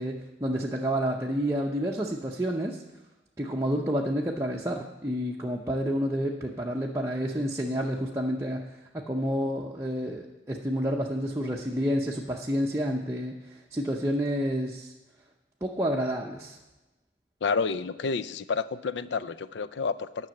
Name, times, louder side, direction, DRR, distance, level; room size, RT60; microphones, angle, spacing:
voice 1, 0.0-2.8 3.4-14.9 15.6-16.6, equal, 15° right, -2 dB, 0.6 m, -29 dB
voice 2, 17.4-20.3, left 5 dB, 80° left, 15 dB, 0.5 m, -30 dB
10.5 x 6.1 x 7.8 m, 1.0 s
head